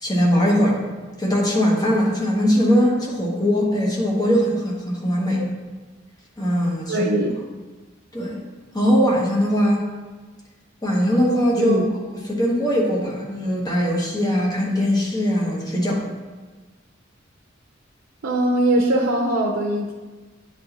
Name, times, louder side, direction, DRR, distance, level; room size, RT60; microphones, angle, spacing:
voice 1, 0.0-0.8 1.2-5.4 6.4-7.1 8.1-8.4 8.7-9.9 10.8-11.8 12.1-16.0, equal, 20° left, -3 dB, 1.2 m, -20 dB
voice 2, 6.9-7.4 11.6-11.9 18.2-19.9, right 1 dB, 80° right, -2 dB, 0.7 m, -21 dB
9.4 x 4.1 x 3.0 m, 1.3 s
head